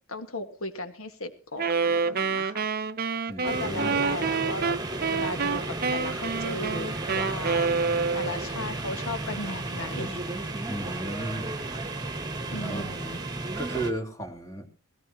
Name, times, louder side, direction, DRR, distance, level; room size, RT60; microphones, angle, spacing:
voice 1, 0.1-2.7 3.4-4.8 5.1-10.2 12.5-13.2, left 2 dB, 65° left, 8 dB, 1.8 m, -36 dB
Wind instrument woodwind instrument, 1.6-8.5, right 5 dB, 45° right, 0.7 m, -28 dB
voice 2, 3.3-4.0 10.7-11.6 12.7-12.9 13.6-14.7, right 1 dB, 15° left, 2 dB, 3.4 m, -34 dB
sound 1, 3.4-13.9, right 2 dB, 20° right, 2.0 m, -33 dB
19.0 x 17.5 x 3.0 m, 0.34 s
head